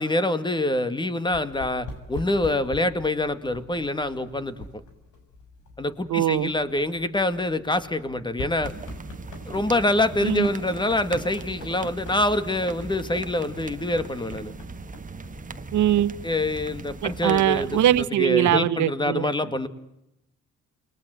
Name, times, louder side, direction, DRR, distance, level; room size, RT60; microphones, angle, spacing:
voice 1, 0.0-4.5 5.8-8.7 9.5-14.5 16.2-17.8 18.2-19.7, left 1 dB, 15° left, 2.2 m, -25 dB
sound 1, 1.3-17.4, left 2 dB, 80° left, 6.5 m, -44 dB
voice 2, 6.1-6.5 10.2-10.5 15.7-16.1 17.0-19.3, right 12 dB, 75° right, 1.1 m, -22 dB
sound 2, 8.6-18.0, right 4 dB, 25° right, 1.3 m, -39 dB
29.0 x 22.0 x 7.9 m
cardioid pair, 90°, 30 cm